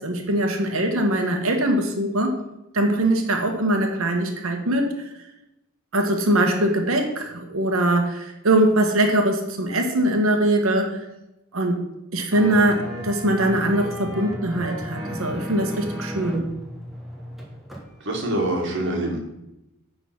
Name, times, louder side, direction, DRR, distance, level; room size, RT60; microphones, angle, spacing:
voice 1, 0.0-2.3 2.7-5.0 5.9-11.0 11.5-11.8 12.1-16.4, right 1 dB, 85° right, 4 dB, 1.2 m, -22 dB
sound 1, 12.3-17.9 18.1-18.2, equal, ahead, 1.3 m, -34 dB
voice 2, 18.0-19.2, right 1 dB, 60° right, 1 dB, 1.7 m, -25 dB
9.5 x 3.9 x 5.8 m, 0.91 s
head